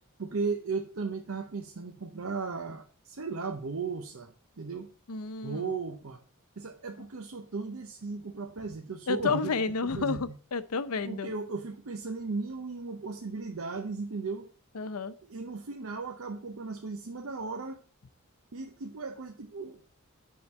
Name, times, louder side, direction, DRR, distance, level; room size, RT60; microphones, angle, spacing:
voice 1, 0.2-4.9 5.4-6.2 6.6-9.5 9.9-10.4 11.0-14.5 15.3-17.8 18.5-19.8, right 4 dB, 70° right, 5 dB, 0.7 m, -36 dB
voice 2, 5.1-5.7 9.1-11.3 14.7-15.1, left 4 dB, 85° left, 13 dB, 0.6 m, -31 dB
9.6 x 3.9 x 5.8 m, 0.41 s
head